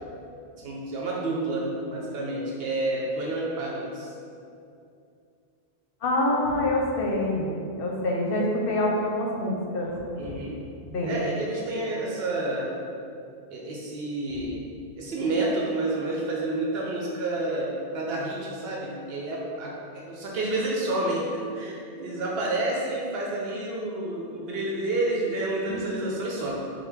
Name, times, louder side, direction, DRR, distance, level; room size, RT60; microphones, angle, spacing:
voice 1, 0.6-4.1 10.2-10.6 11.0-12.7 13.5-14.6 15.0-26.5, right 2 dB, 75° right, -3 dB, 0.8 m, -29 dB
voice 2, 6.0-10.4 10.9-11.2 25.7-25.8 26.4-26.5, left 1 dB, 65° left, -2 dB, 0.8 m, -26 dB
4.6 x 2.2 x 3.3 m, 2.5 s
omnidirectional pair, 1.0 m